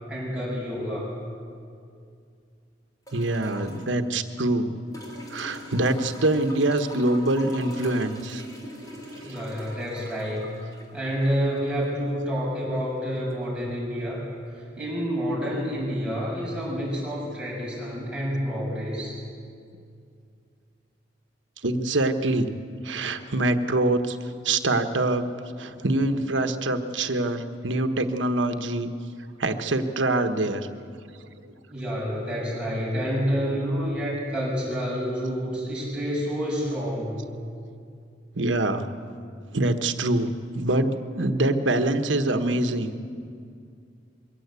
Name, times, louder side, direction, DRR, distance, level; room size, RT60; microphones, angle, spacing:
voice 1, 0.1-1.1 9.2-10.5 10.9-14.3 14.8-19.2 31.7-37.2, equal, 5° right, -5 dB, 6.7 m, -28 dB
sound 1, 3.1-3.9 4.9-11.9 13.3-13.4, left 1 dB, 20° left, 3.8 m, -43 dB
voice 2, 3.1-4.8 5.3-8.4 9.2-9.3 21.6-22.5 22.8-25.2 25.6-28.9 29.4-30.7 31.2-31.3 38.3-38.9 39.5-42.9, right 2 dB, 90° right, 8 dB, 1.3 m, -25 dB
23.0 x 16.0 x 8.4 m, 2.3 s
head